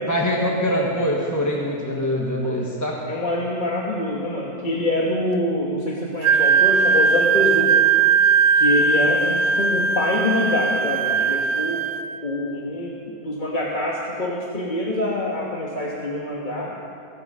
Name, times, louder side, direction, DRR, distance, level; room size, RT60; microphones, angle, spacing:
voice 1, 0.1-3.0 9.0-9.1, equal, 10° left, -2 dB, 1.2 m, -23 dB
voice 2, 3.1-7.8 8.5-11.8 12.2-12.9 13.2-16.7, left 1 dB, 30° left, -3 dB, 1.4 m, -25 dB
Wind instrument woodwind instrument, 6.2-12.0, right 5 dB, 75° right, 1.1 m, -19 dB
23.5 x 8.7 x 5.5 m, 2.4 s
omnidirectional pair, 1.7 m